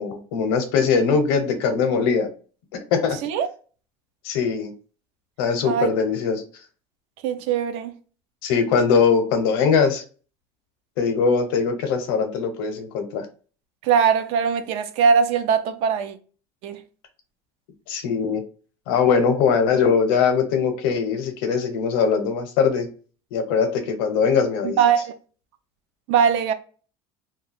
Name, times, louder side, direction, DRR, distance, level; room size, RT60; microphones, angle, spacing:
voice 1, 0.0-2.3 2.7-3.2 4.2-4.7 5.4-6.4 8.4-10.0 11.0-13.3 17.9-18.4 18.9-22.9 23.3-24.8, left 6 dB, 85° left, 0.6 m, -21 dB
voice 2, 7.2-7.9 13.8-16.2 16.6-16.8 24.6-25.1 26.1-26.5, right 7 dB, 55° right, 0.4 m, -21 dB
2.3 x 2.2 x 3.3 m
cardioid pair, 170°, 13 cm